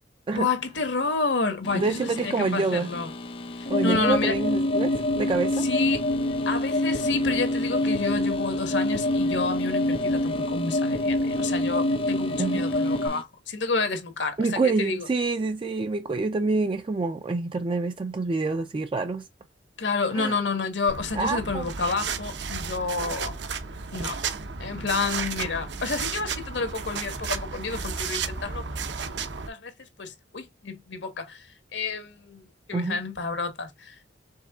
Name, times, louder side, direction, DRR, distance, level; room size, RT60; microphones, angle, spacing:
voice 1, 0.3-3.1 3.5-4.4 5.5-6.1 6.5-15.1 19.8-23.4 23.9-24.2 24.6-28.7 29.1-29.7 30.0-34.0, left 4 dB, 75° left, 1.4 m, -30 dB
sound 1, 1.6-13.2, left 2 dB, 30° left, 0.5 m, -39 dB
voice 2, 1.7-2.9 3.7-5.6 12.4-12.7 14.4-19.2 20.1-20.3 21.1-21.7 32.7-33.0, right 3 dB, 30° right, 0.4 m, -27 dB
sound 2, 3.7-13.1, left 1 dB, 50° left, 0.9 m, -26 dB
sound 3, 20.9-29.5, right 5 dB, 70° right, 0.8 m, -33 dB
5.4 x 3.6 x 2.3 m
head